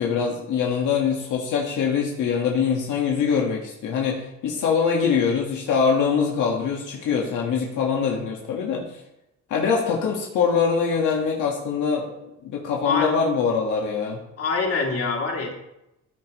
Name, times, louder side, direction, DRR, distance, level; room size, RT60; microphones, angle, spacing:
voice 1, 0.0-8.8 9.5-12.1 12.4-14.2, left 6 dB, 85° left, -1 dB, 1.7 m, -23 dB
voice 2, 14.4-15.5, left 4 dB, 50° left, -1 dB, 2.8 m, -24 dB
14.0 x 7.7 x 3.1 m, 0.87 s
cardioid pair, 90°, 30 cm